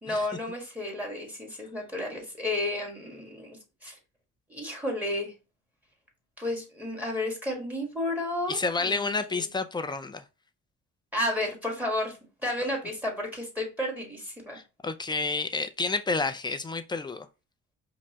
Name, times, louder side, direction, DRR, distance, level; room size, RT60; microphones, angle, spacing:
voice 1, 0.0-3.9 4.5-5.3 6.4-8.6 8.8-9.5 11.1-12.2 12.4-14.6, left 1 dB, 5° right, 1.4 m, -32 dB
voice 2, 8.5-10.2 14.5-17.3, left 3 dB, 15° left, 0.5 m, -30 dB
5.3 x 2.1 x 2.8 m
cardioid pair, 90°, 30 cm